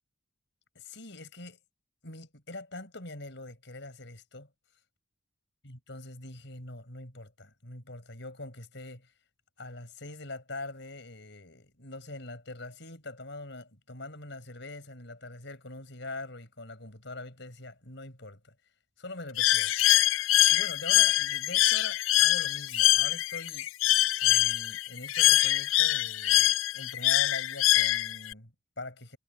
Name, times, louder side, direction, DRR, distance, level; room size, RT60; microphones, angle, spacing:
voice 1, 0.7-1.6 2.0-4.5 5.6-9.1 9.6-18.5 19.0-19.8 20.5-23.7 24.2-29.2, left 2 dB, 60° left, 6.8 m, -43 dB
Bird, 19.4-28.3, left 15 dB, 80° left, 0.4 m, -24 dB
head